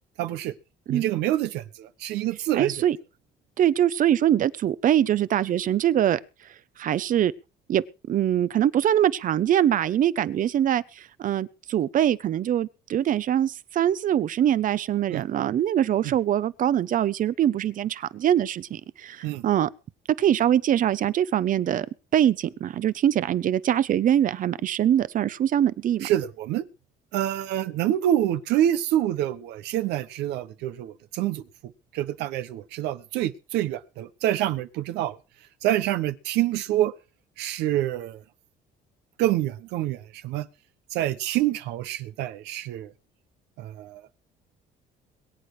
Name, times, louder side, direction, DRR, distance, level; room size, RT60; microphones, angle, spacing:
voice 1, 0.2-0.5 0.9-2.7 15.1-15.2 19.2-19.4 26.0-26.6 27.1-31.4 31.9-35.2 35.6-36.9 37.4-38.2 39.2-40.5 40.9-42.9 43.6-44.0, right 13 dB, 85° right, 1.0 m, -26 dB
voice 2, 2.5-3.0 3.6-6.2 6.8-7.3 7.7-19.7 20.2-21.9 22.1-26.1, right 10 dB, 50° right, 0.8 m, -23 dB
22.0 x 8.5 x 4.8 m
cardioid pair, 110°, 17 cm